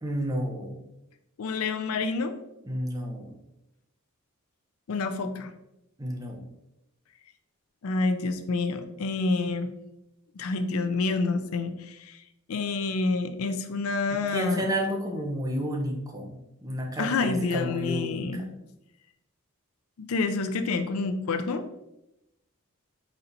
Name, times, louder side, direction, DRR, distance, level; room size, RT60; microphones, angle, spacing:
voice 1, 0.0-0.8 2.7-3.3 6.0-6.4 14.1-18.5, equal, 15° right, 1 dB, 0.6 m, -31 dB
voice 2, 1.4-2.3 4.9-5.5 7.8-9.7 10.4-12.2 12.5-14.7 17.0-18.4 20.0-21.6, left 3 dB, 80° left, 9 dB, 0.4 m, -28 dB
4.3 x 4.1 x 2.6 m, 0.88 s
head